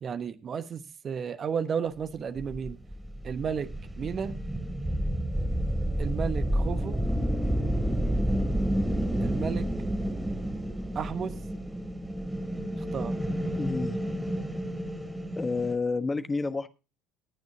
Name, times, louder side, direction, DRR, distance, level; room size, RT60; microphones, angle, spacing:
voice 1, 0.0-2.8 3.2-4.4 6.0-7.0 9.2-9.7 10.9-11.4 12.8-13.2, right 7 dB, 40° right, 1.2 m, -33 dB
sound 1, 2.4-15.7, right 1 dB, 5° right, 2.7 m, -30 dB
voice 2, 13.5-14.0 15.4-16.7, left 4 dB, 20° left, 1.2 m, -29 dB
20.5 x 9.3 x 2.8 m
figure-of-eight pair, 60°, 0 cm